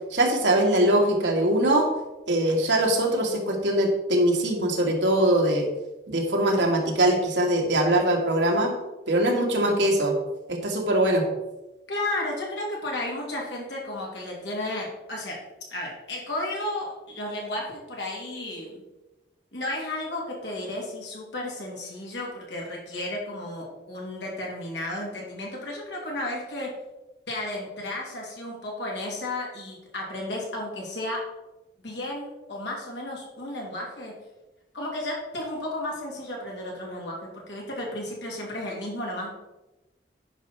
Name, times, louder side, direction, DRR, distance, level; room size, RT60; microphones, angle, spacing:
voice 1, 0.1-1.9 2.3-5.7 6.1-8.7 9.1-10.2 10.5-11.3, right 1 dB, 85° right, 1 dB, 1.9 m, -22 dB
voice 2, 11.9-15.4 15.7-18.8 19.5-26.7 27.3-31.2 31.8-34.1 34.7-39.3, left 1 dB, 75° left, -3 dB, 3.0 m, -33 dB
10.0 x 5.5 x 4.5 m, 1.0 s
head